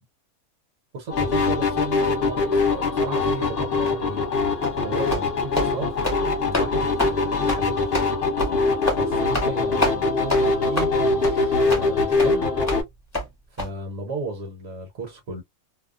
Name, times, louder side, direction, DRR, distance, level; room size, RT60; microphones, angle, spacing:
voice 1, 0.9-4.3 4.8-5.9 6.4-7.8 9.0-12.5 13.5-15.4, right 3 dB, 65° right, 1.2 m, -34 dB
sound 1, 1.1-12.8, left 3 dB, 50° left, 1.1 m, -23 dB
sound 2, 4.6-4.8 5.1-5.3 5.5-5.7 6.0-6.2 6.5-6.7 7.0-7.1 7.5-7.6 7.9-8.1 8.4-8.5 8.9-9.0 9.3-9.5 9.8-10.0 10.3-10.4 10.7-10.9 11.2-11.3 11.7-11.8 12.2-12.3 12.7-12.8 13.1-13.3 13.6-13.7, left 1 dB, 15° left, 0.9 m, -26 dB
2.7 x 2.1 x 2.4 m
omnidirectional pair, 1.5 m